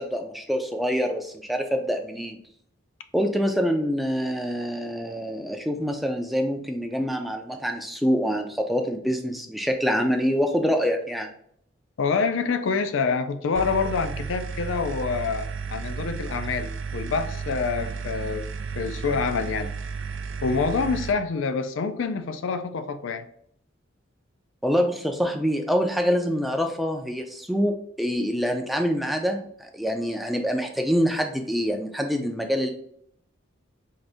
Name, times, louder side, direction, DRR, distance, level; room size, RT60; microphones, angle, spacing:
voice 1, 0.0-2.4 3.1-11.3 24.6-32.7, equal, ahead, 3 dB, 0.4 m, -25 dB
voice 2, 12.0-18.5 18.8-19.7 20.4-23.2, left 5 dB, 70° left, 10 dB, 0.4 m, -26 dB
sound 1, 13.5-21.1, right 5 dB, 70° right, 0.3 m, -33 dB
3.8 x 2.6 x 3.3 m, 0.67 s
head